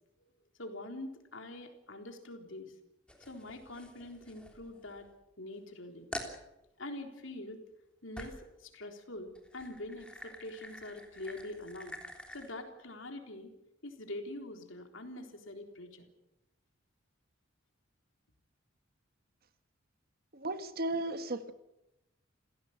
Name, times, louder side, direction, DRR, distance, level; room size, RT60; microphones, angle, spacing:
voice 1, 0.6-2.7 3.2-5.1 5.4-6.1 6.8-7.6 8.0-12.0 12.3-13.5 13.8-16.1, left 1 dB, 70° left, 4 dB, 3.8 m, -44 dB
sound 1, 3.1-5.1 5.6-5.7 6.1-6.4 8.2-8.5 9.3-12.5, left 1 dB, 5° left, 3.4 m, -47 dB
voice 2, 20.3-21.5, right 2 dB, 50° right, 10 dB, 1.7 m, -35 dB
28.0 x 16.5 x 8.1 m, 0.91 s
head